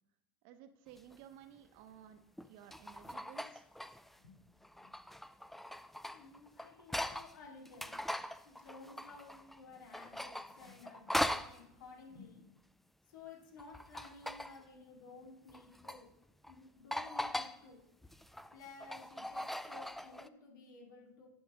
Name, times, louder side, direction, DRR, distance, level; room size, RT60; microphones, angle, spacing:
voice 1, 0.4-3.7, right 9 dB, 60° right, 8 dB, 0.8 m, -56 dB
sound 1, 1.0-1.1 2.4-4.2 4.6-7.3 7.6-9.6 9.9-11.6 13.6-14.6 15.5-16.0 16.4-16.5 16.9-17.6 18.0-20.3, left 1 dB, ahead, 0.4 m, -41 dB
voice 2, 6.1-8.0 8.4-12.5 13.1-16.1 16.5-17.8 18.5-21.3, left 4 dB, 85° left, -1 dB, 2.5 m, -55 dB
11.0 x 6.1 x 3.8 m, 0.88 s
hypercardioid pair, 105°, 10 cm